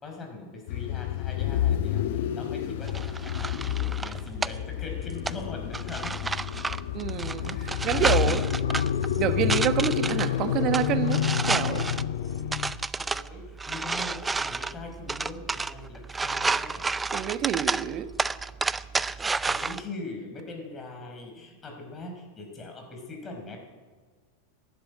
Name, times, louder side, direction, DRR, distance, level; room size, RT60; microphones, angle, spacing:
voice 1, 0.0-6.3 7.4-8.4 8.8-8.9 13.0-16.9 19.5-23.6, left 2 dB, 25° left, 4.9 m, -41 dB
sound 1, 0.7-12.9, left 11 dB, 65° left, 0.7 m, -30 dB
sound 2, 2.8-19.8, right 4 dB, 15° right, 0.5 m, -32 dB
sound 3, 5.0-12.1, left 7 dB, 85° left, 0.4 m, -32 dB
voice 2, 6.9-7.5 7.8-8.4 9.2-11.9 17.1-18.1, right 10 dB, 45° right, 1.3 m, -28 dB
12.0 x 11.5 x 9.7 m
hypercardioid pair, 100°, 0 cm